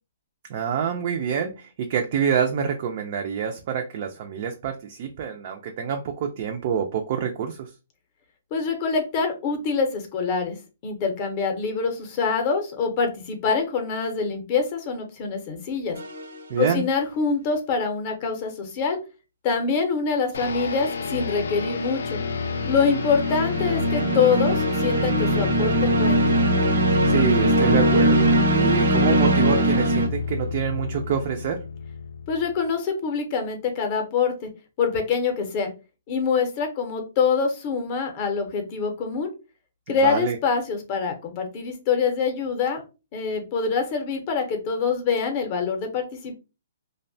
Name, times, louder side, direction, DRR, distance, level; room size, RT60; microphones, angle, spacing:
voice 1, 0.5-7.7 16.5-16.8 27.0-31.6 39.9-40.4, right 7 dB, 40° right, 3 dB, 0.3 m, -26 dB
voice 2, 8.5-10.6 10.8-16.0 16.6-19.0 19.4-22.2 22.7-25.7 26.0-26.2 32.3-34.5 34.8-35.7 36.1-39.3 39.9-42.8 43.1-46.3, left 5 dB, 30° left, 5 dB, 0.6 m, -25 dB
sound 1, 16.0-16.3 22.2-30.1, right 2 dB, 85° right, 0.6 m, -22 dB
sound 2, 20.3-32.6, left 5 dB, 80° left, 0.4 m, -28 dB
2.6 x 2.1 x 2.6 m, 0.30 s
hypercardioid pair, 165°, 0 cm